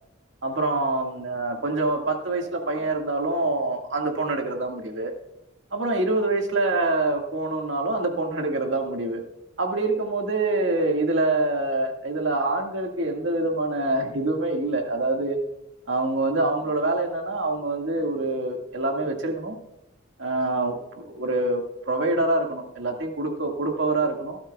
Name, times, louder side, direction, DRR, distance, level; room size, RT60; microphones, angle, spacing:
voice 1, 0.4-5.1 5.7-9.2 9.6-15.4 15.9-19.6 20.2-24.4, right 2 dB, 75° right, 2 dB, 1.8 m, -25 dB
16.5 x 12.5 x 2.3 m, 0.89 s
head